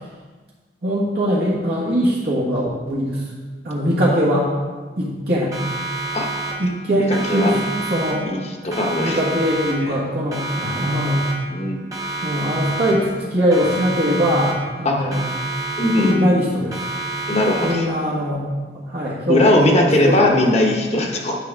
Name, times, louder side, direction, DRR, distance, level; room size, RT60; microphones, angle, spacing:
voice 1, 0.8-3.2 3.6-4.5 5.0-5.5 6.6-7.6 7.9-8.3 9.0-11.2 12.2-15.2 15.9-16.9 17.6-18.5 18.9-20.5 21.0-21.1, equal, 65° right, -8 dB, 1.6 m, -21 dB
Siren, 5.5-6.8 7.1-8.4 8.7-10.0 10.3-11.6 11.9-13.2 13.5-14.8 15.1-16.4 16.7-18.0, right 2 dB, 20° right, 1.2 m, -29 dB
voice 2, 7.0-7.5 8.2-9.2 9.8-9.9 11.5-11.9 14.8-15.3 15.8-16.4 17.3-17.9 19.3-21.4, left 1 dB, 35° left, 1 dB, 1.0 m, -19 dB
9.8 x 5.4 x 3.6 m, 1.4 s
head